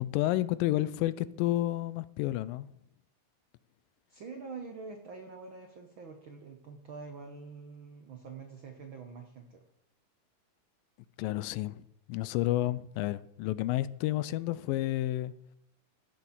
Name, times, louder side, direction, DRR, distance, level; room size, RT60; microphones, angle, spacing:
voice 1, 0.0-2.7 11.2-15.3, left 15 dB, 85° left, 2.3 m, -30 dB
voice 2, 4.1-9.6, right 4 dB, 80° right, 1.1 m, -45 dB
15.0 x 6.0 x 7.2 m
omnidirectional pair, 3.9 m